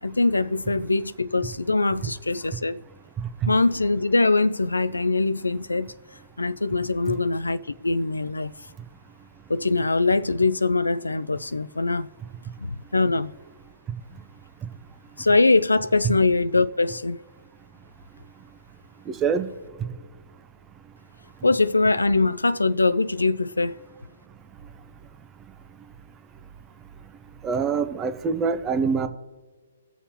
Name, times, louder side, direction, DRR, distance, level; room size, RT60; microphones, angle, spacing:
voice 1, 0.0-2.8 3.5-5.9 6.4-8.5 9.5-12.1 12.6-13.3 15.2-17.2 21.4-23.8, left 3 dB, 90° left, 0.3 m, -22 dB
voice 2, 19.1-19.5 27.4-29.1, right 5 dB, 20° right, 0.8 m, -24 dB
20.0 x 7.0 x 2.9 m
figure-of-eight pair, 130°, 0 cm